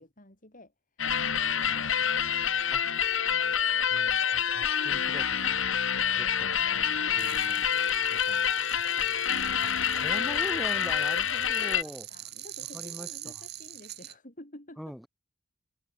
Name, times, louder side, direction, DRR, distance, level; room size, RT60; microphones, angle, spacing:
voice 1, 0.0-1.8 2.4-2.9 9.8-10.0 11.1-15.0, left 1 dB, 45° left, 6.9 m, -52 dB
sound 1, 1.0-11.8, left 8 dB, 90° left, 2.4 m, -27 dB
voice 2, 3.9-5.7 6.1-6.7 7.1-7.6 8.1-9.2 9.6-12.1 12.7-13.3 14.8-15.1, equal, ahead, 6.0 m, -43 dB
sound 2, 7.2-14.1, right 13 dB, 55° right, 6.1 m, -45 dB
head